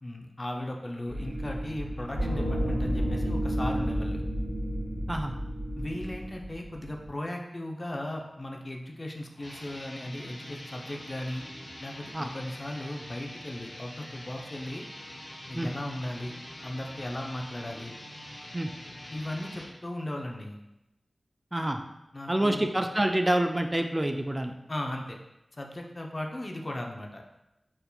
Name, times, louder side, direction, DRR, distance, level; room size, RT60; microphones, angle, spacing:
voice 1, 0.0-4.2 5.8-11.4 11.8-14.8 15.5-16.3 16.6-17.9 19.1-20.6 22.1-22.7 24.7-25.2 25.5-27.2, left 1 dB, 40° left, 1 dB, 0.6 m, -37 dB
sound 1, 1.1-7.1, equal, 90° right, 1.3 m, -31 dB
sound 2, 9.3-19.7, left 1 dB, 65° left, 1.2 m, -45 dB
voice 2, 21.5-21.8 22.3-24.5, right 1 dB, 25° right, 5 dB, 0.3 m, -27 dB
4.5 x 3.6 x 2.3 m, 0.91 s
cardioid pair, 40°, 0 cm